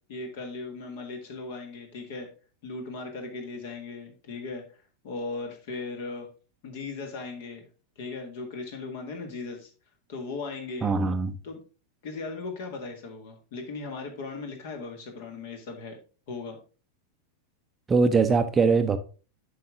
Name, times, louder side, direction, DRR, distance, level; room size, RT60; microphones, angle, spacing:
voice 1, 0.1-2.3 2.6-4.7 5.0-6.3 6.6-7.7 8.0-9.7 10.1-10.9 11.4-11.6 12.0-16.0 16.3-16.6, left 3 dB, 50° left, 4 dB, 1.8 m, -37 dB
voice 2, 10.8-11.4 17.9-19.0, right 4 dB, 15° right, 9 dB, 0.6 m, -22 dB
7.7 x 5.5 x 3.6 m, 0.35 s
figure-of-eight pair, 90°, 0 cm